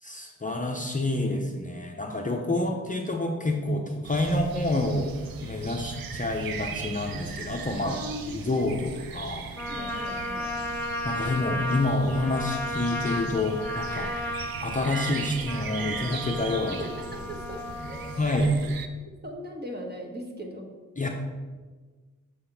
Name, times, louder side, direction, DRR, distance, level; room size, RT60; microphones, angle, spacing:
voice 1, 0.0-8.0 8.3-9.4 10.8-14.1 14.6-16.8 17.8-18.5 21.0-21.1, left 2 dB, 25° left, 1 dB, 0.6 m, -28 dB
sound 1, 4.0-18.9, right 6 dB, 85° right, 0.6 m, -39 dB
voice 2, 7.8-8.9 9.7-10.5 16.7-17.6 17.9-18.5 19.2-20.7, equal, 30° right, 1 dB, 1.2 m, -39 dB
Trumpet, 9.5-18.2, left 1 dB, 5° left, 1.3 m, -34 dB
7.0 x 3.5 x 5.7 m, 1.4 s
wide cardioid pair, 95°, 34 cm